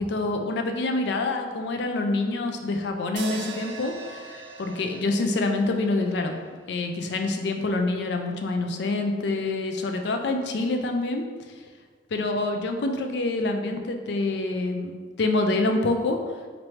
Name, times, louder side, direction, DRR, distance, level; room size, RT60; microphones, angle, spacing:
voice 1, 0.0-6.4 6.7-11.3 12.1-16.2, left 2 dB, 70° left, 4 dB, 0.4 m, -26 dB
sound 1, 3.2-7.4, right 3 dB, 75° right, 0.5 m, -41 dB
4.3 x 2.6 x 3.1 m, 1.5 s
head